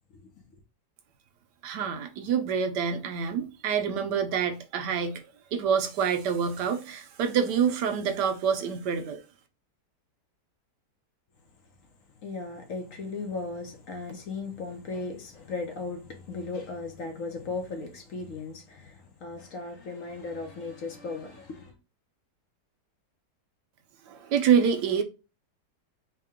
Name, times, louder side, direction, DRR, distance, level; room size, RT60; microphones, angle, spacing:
voice 1, 0.1-0.6 11.8-11.9 12.2-21.8, left 3 dB, 60° left, 1.0 m, -37 dB
voice 2, 1.6-9.2 24.0-25.0, right 7 dB, 85° right, 1.3 m, -27 dB
4.6 x 2.2 x 3.5 m
omnidirectional pair, 1.8 m